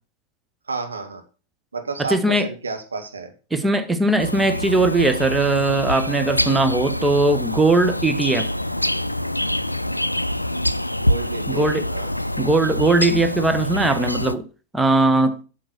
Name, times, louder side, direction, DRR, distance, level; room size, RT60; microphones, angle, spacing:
voice 1, 0.7-1.2 1.7-3.3 11.0-12.1, right 4 dB, 75° right, 1.6 m, -31 dB
voice 2, 2.1-2.5 3.5-8.5 11.5-11.8 12.4-14.5 14.7-15.4, right 2 dB, 10° right, 1.1 m, -19 dB
sound 1, 4.2-14.3, left 1 dB, 85° left, 0.4 m, -25 dB
7.8 x 6.6 x 6.2 m
figure-of-eight pair, 90°, 0 cm